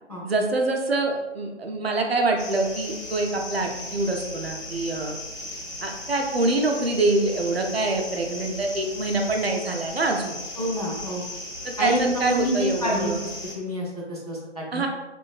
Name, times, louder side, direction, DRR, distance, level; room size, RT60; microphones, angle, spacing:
voice 1, 0.2-5.1 5.8-10.4 11.6-13.2 14.7-14.9, right 2 dB, 60° right, 2 dB, 0.5 m, -25 dB
sound 1, 2.4-13.6, left 1 dB, 65° left, 1.3 m, -37 dB
voice 2, 10.6-11.2 11.8-13.1 13.5-14.8, equal, 35° left, -4 dB, 0.4 m, -27 dB
3.0 x 2.5 x 2.2 m, 1.1 s
figure-of-eight pair, 160°, 36 cm